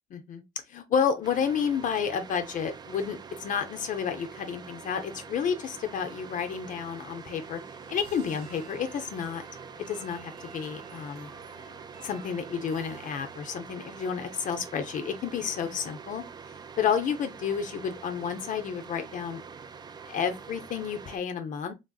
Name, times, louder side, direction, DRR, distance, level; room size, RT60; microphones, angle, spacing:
voice 1, 0.1-0.4 0.7-7.6 7.9-9.4 9.9-11.3 12.0-16.2 16.8-19.4 20.0-21.7, left 7 dB, 50° left, 0.5 m, -30 dB
sound 1, 1.2-21.2, right 6 dB, 25° right, 0.3 m, -45 dB
sound 2, 5.4-13.7, right 4 dB, 65° right, 1.1 m, -54 dB
3.2 x 2.5 x 2.2 m
cardioid pair, 110°, 17 cm